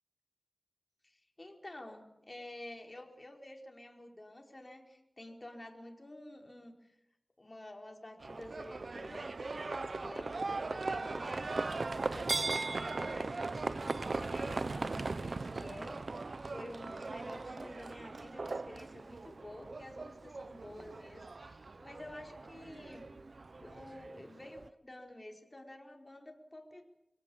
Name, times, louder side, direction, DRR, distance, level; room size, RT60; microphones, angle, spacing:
voice 1, 1.0-6.9 7.4-23.1 23.6-26.8, left 1 dB, 35° left, 2 dB, 4.8 m, -50 dB
Livestock farm animals working animals, 8.2-24.7, right 3 dB, 75° right, 1.0 m, -39 dB
25.0 x 18.0 x 8.8 m, 0.88 s
wide cardioid pair, 60°, 0 cm